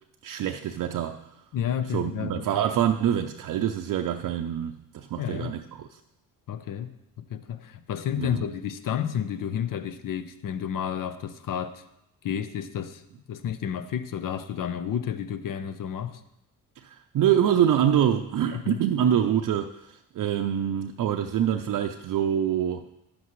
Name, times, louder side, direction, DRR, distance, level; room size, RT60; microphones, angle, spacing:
voice 1, 0.2-1.3 1.9-6.0 8.2-8.4 16.8-22.9, right 9 dB, 60° right, 0.5 m, -25 dB
voice 2, 1.5-2.4 5.2-5.6 6.5-11.8 12.2-13.0 13.3-16.2 18.5-18.8, left 9 dB, 60° left, 0.7 m, -31 dB
10.5 x 7.9 x 3.1 m
cardioid pair, 70°, 36 cm